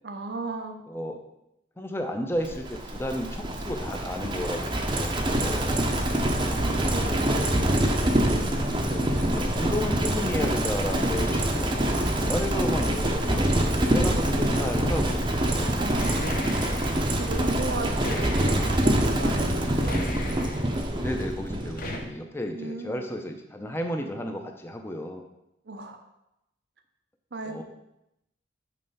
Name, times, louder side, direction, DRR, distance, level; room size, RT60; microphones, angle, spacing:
voice 1, 0.0-0.8 6.3-8.0 15.8-16.7 17.2-20.0 22.5-23.1 25.7-26.0 27.3-27.6, right 3 dB, 60° right, 5 dB, 0.7 m, -36 dB
voice 2, 0.9-1.2 1.8-5.8 8.8-15.6 18.1-18.3 21.0-25.2 27.4-27.6, left 1 dB, 10° left, 4 dB, 0.7 m, -33 dB
Livestock farm animals working animals, 2.4-22.1, right 1 dB, 25° right, 0.7 m, -25 dB
sound 1, 16.0-17.0 18.0-18.8 19.8-20.7 21.8-22.0, left 2 dB, 45° left, 0.9 m, -36 dB
8.9 x 3.3 x 5.5 m, 0.85 s
head